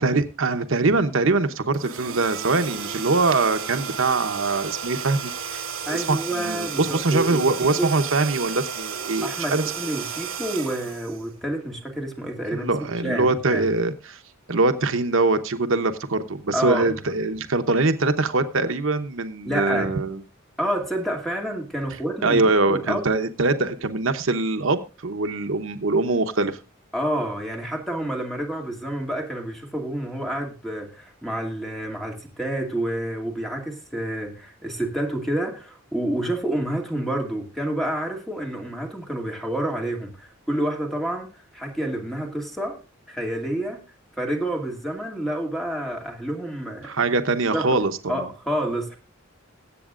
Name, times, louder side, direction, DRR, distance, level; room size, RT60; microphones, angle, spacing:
voice 1, 0.0-5.6 5.9-9.6 12.5-14.2 14.5-20.2 22.2-26.6 46.8-48.3, right 3 dB, 70° right, 9 dB, 0.9 m, -23 dB
sound 1, 1.7-11.7, right 7 dB, 85° right, 2.1 m, -33 dB
voice 2, 5.9-8.0 9.2-13.7 16.5-17.0 19.5-19.9 20.6-23.1 26.9-42.8 43.1-43.8 44.2-46.9 47.5-47.8 48.1-49.0, right 1 dB, ahead, 1 dB, 2.4 m, -29 dB
21.0 x 8.3 x 2.5 m, 0.34 s
head